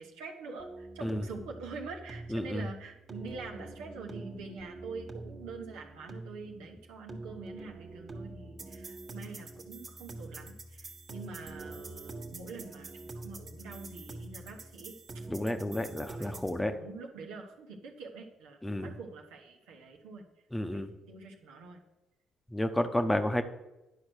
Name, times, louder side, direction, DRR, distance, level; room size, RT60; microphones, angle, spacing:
voice 1, 0.0-15.2 15.7-20.2 20.7-21.8, right 4 dB, 85° right, 0 dB, 1.2 m, -45 dB
sound 1, 0.6-16.6, right 2 dB, 40° right, 1.4 m, -45 dB
voice 2, 2.3-2.7 15.3-16.8 18.6-18.9 20.5-20.9 22.5-23.4, left 1 dB, 10° left, 8 dB, 0.9 m, -31 dB
10.5 x 4.7 x 6.4 m, 0.98 s
supercardioid pair, 60°, 0 cm